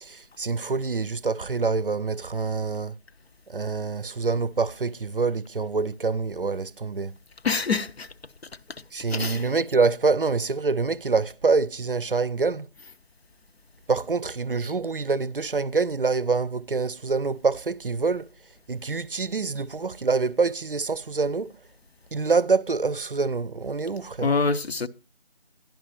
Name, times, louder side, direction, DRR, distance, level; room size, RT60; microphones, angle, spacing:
voice 1, 0.0-3.0 3.5-7.2 8.9-12.7 13.9-18.3 18.7-21.6 22.1-24.3, right 4 dB, 55° right, 0.5 m, -26 dB
voice 2, 7.4-8.1 9.1-9.5 24.2-24.9, left 4 dB, 70° left, 0.7 m, -25 dB
12.5 x 10.5 x 2.9 m
figure-of-eight pair, 170°, 32 cm